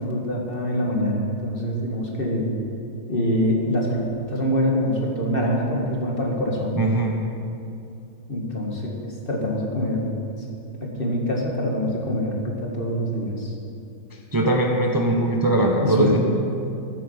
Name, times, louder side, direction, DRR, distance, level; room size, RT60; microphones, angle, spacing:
voice 1, 0.0-2.5 3.1-4.0 4.3-6.8 8.3-8.9 9.3-10.1 10.8-13.5 15.8-16.2, equal, 30° left, -1 dB, 2.1 m, -24 dB
voice 2, 6.8-7.2 14.3-16.2, right 1 dB, 30° right, 1 dB, 0.4 m, -20 dB
14.0 x 8.5 x 7.3 m, 2.5 s
omnidirectional pair, 2.1 m